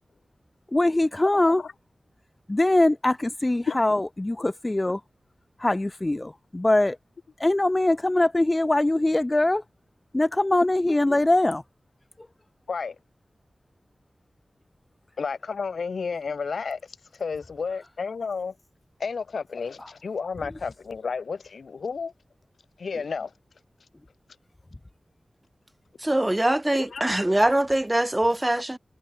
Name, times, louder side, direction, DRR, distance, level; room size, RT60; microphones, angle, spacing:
voice 1, 0.7-1.6 2.5-5.0 5.6-7.0 7.4-9.6 10.1-11.6, left 1 dB, 25° left, 1.1 m, -22 dB
voice 2, 1.3-1.7 3.7-3.8 12.7-12.9 15.2-16.8 17.1-18.5 19.0-22.1 22.8-23.3 26.7-27.0, left 5 dB, 90° left, 4.6 m, -31 dB
voice 3, 26.0-28.8, right 1 dB, 20° right, 2.0 m, -23 dB
wide cardioid pair, 60°, 0 cm